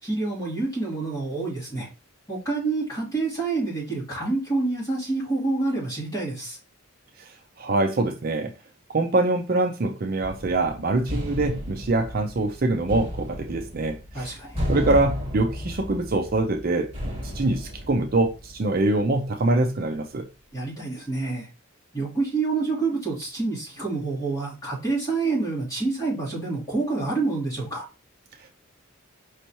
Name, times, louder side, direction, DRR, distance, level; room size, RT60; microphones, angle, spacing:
voice 1, 0.0-1.9 2.3-6.6 14.1-14.6 20.5-21.5 21.9-27.9, right 3 dB, 15° left, 2.6 m, -27 dB
voice 2, 7.2-8.5 8.9-14.3 14.7-16.9 17.2-20.3, right 2 dB, 45° right, 0.5 m, -24 dB
sound 1, 10.2-18.9, left 1 dB, 25° right, 1.9 m, -33 dB
5.3 x 3.2 x 2.9 m
head